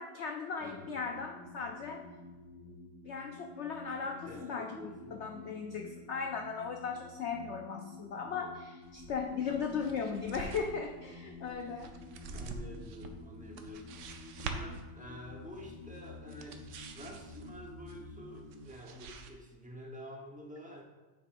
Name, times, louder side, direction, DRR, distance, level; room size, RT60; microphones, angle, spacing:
voice 1, 0.0-2.0 3.0-4.7 5.1-11.9, left 5 dB, 90° left, 3 dB, 0.6 m, -37 dB
sound 1, 0.6-18.6, left 3 dB, 50° left, 3.0 m, -51 dB
voice 2, 4.0-5.2 12.3-14.1 14.4-16.6 16.9-20.8, equal, 10° right, 0 dB, 0.5 m, -48 dB
sound 2, 8.9-19.3, right 4 dB, 85° right, 1.4 m, -47 dB
9.1 x 7.0 x 2.5 m, 1.3 s
omnidirectional pair, 1.8 m